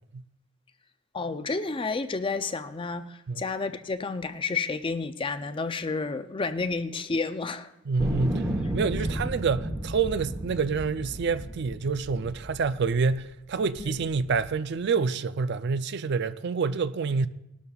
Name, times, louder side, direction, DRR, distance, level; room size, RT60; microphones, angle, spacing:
voice 1, 1.1-7.7 13.8-13.9, left 4 dB, 25° left, 0.4 m, -30 dB
voice 2, 7.9-17.3, right 5 dB, 50° right, 0.4 m, -27 dB
sound 1, 8.0-13.2 13.8-14.5, right 1 dB, 15° right, 1.0 m, -33 dB
19.0 x 12.5 x 2.4 m
head